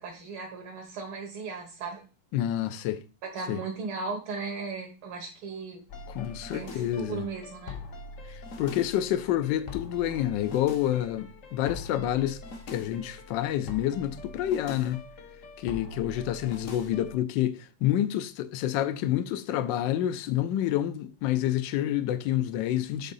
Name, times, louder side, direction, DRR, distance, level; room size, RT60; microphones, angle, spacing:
voice 1, 0.0-2.0 3.2-5.8 6.5-7.8, right 4 dB, 70° right, 2.1 m, -36 dB
voice 2, 2.3-3.0 3.5-3.6 6.1-7.3 8.3-12.4 12.7-15.0 15.6-23.1, left 12 dB, 70° left, 1.2 m, -28 dB
sound 1, 5.9-17.2, left 3 dB, 50° left, 1.0 m, -43 dB
8.0 x 3.7 x 5.5 m
omnidirectional pair, 2.4 m